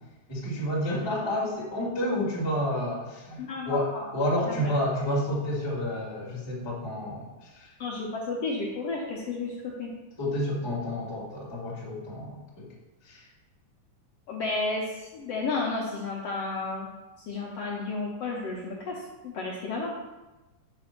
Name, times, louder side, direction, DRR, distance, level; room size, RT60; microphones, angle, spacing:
voice 1, 0.3-7.7 10.2-12.7 13.0-13.2, left 1 dB, 15° left, -5 dB, 1.1 m, -30 dB
voice 2, 3.4-4.1 4.5-4.7 7.8-9.9 14.3-16.9 17.3-19.9, left 3 dB, 70° left, -3 dB, 1.5 m, -32 dB
6.1 x 5.2 x 5.8 m, 1.1 s
omnidirectional pair, 3.7 m